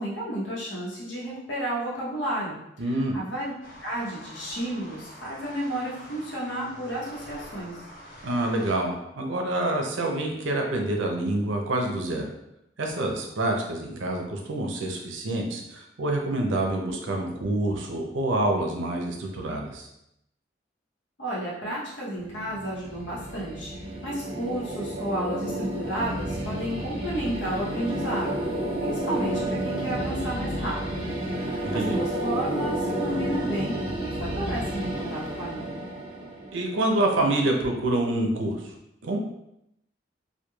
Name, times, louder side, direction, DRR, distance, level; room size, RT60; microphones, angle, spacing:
voice 1, 0.0-3.5 3.8-7.8 21.2-28.4 28.8-31.1 31.4-35.9, right 1 dB, 75° left, -5 dB, 0.9 m, -32 dB
voice 2, 2.8-3.2 8.2-12.2 12.8-19.9 31.7-32.0 36.5-38.7 39.0-39.2, right 1 dB, 90° right, 2 dB, 0.5 m, -27 dB
sound 1, 3.6-8.7, equal, 45° left, 0.4 m, -45 dB
sound 2, 22.1-37.2, right 1 dB, 30° right, 0.4 m, -31 dB
3.0 x 2.2 x 2.3 m, 0.82 s
head